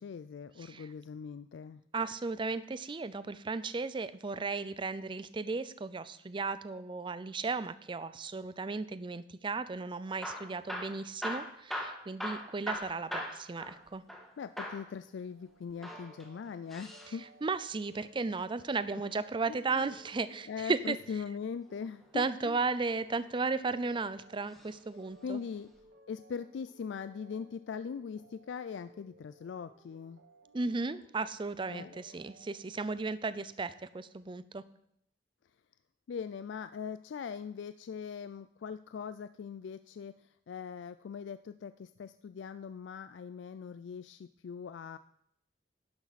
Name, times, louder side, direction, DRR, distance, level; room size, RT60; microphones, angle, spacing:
voice 1, 0.0-1.8 14.4-17.3 19.5-19.9 20.5-22.6 25.2-25.7 26.1-30.2 31.7-32.0 36.1-45.0, left 6 dB, 75° left, 13 dB, 0.3 m, -41 dB
voice 2, 1.9-14.0 17.4-21.0 22.1-25.4 30.5-34.6, right 4 dB, 25° right, 15 dB, 0.5 m, -35 dB
Hammer / Drill, 10.1-14.3 14.6-14.9 15.7-17.1 18.9-20.1 21.8-22.3 23.0-23.8 24.5-24.8 25.1-25.2 25.8-25.9, equal, ahead, 1.6 m, -41 dB
sound 1, 14.5-32.9, right 1 dB, 80° right, 1.7 m, -61 dB
11.5 x 10.5 x 4.1 m, 0.73 s
head